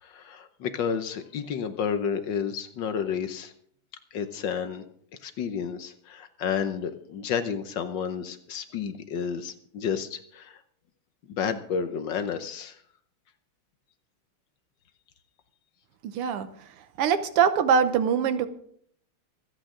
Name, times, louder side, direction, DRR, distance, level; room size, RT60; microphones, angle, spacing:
voice 1, 0.0-3.5 4.1-4.8 5.2-10.6 11.3-12.8, left 7 dB, 65° left, 9 dB, 1.4 m, -31 dB
voice 2, 16.0-16.5 17.0-18.5, right 7 dB, 85° right, 11 dB, 1.9 m, -23 dB
25.0 x 8.7 x 3.8 m, 0.64 s
omnidirectional pair, 2.4 m